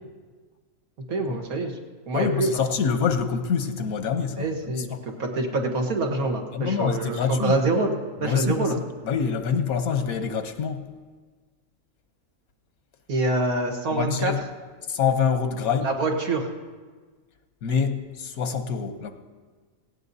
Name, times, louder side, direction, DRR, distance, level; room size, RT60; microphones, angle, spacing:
voice 1, 1.1-1.8 2.1-2.5 4.4-8.8 13.1-14.3 15.8-16.5, right 2 dB, 90° right, 2 dB, 1.8 m, -26 dB
voice 2, 2.1-5.0 6.5-7.6 8.2-8.7 9.0-10.8 13.9-14.4 14.9-15.9 17.6-19.1, left 6 dB, 90° left, 8 dB, 1.3 m, -26 dB
18.0 x 17.0 x 2.7 m, 1.4 s
omnidirectional pair, 1.5 m